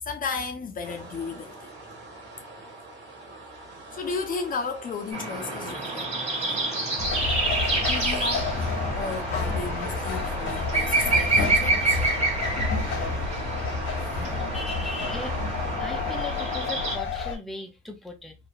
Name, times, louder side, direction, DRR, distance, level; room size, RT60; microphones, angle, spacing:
voice 1, 0.0-1.7 3.9-6.1 7.9-8.5 9.0-12.0, left 4 dB, 45° left, 0.6 m, -33 dB
sound 1, 0.8-15.8, right 2 dB, 65° right, 1.6 m, -45 dB
sound 2, 5.1-17.0, right 3 dB, 35° right, 1.5 m, -28 dB
sound 3, 7.0-17.4, left 4 dB, 90° left, 1.1 m, -30 dB
voice 2, 14.3-15.4 15.8-18.4, left 2 dB, ahead, 0.6 m, -38 dB
2.9 x 2.3 x 2.4 m
cardioid pair, 90°, 20 cm